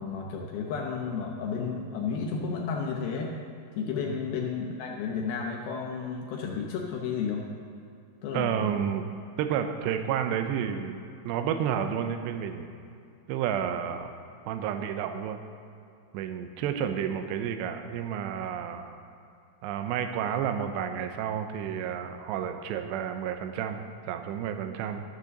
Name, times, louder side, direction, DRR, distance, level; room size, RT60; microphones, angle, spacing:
voice 1, 0.0-3.3 3.8-7.5 8.2-8.7, left 5 dB, 80° left, 0 dB, 2.2 m, -32 dB
voice 2, 8.3-9.1 9.4-10.9 11.3-12.7 13.3-14.1 14.5-15.4 16.1-18.9 19.6-25.0, right 8 dB, 80° right, 7 dB, 2.6 m, -31 dB
14.0 x 6.8 x 6.5 m, 2.5 s
omnidirectional pair, 5.6 m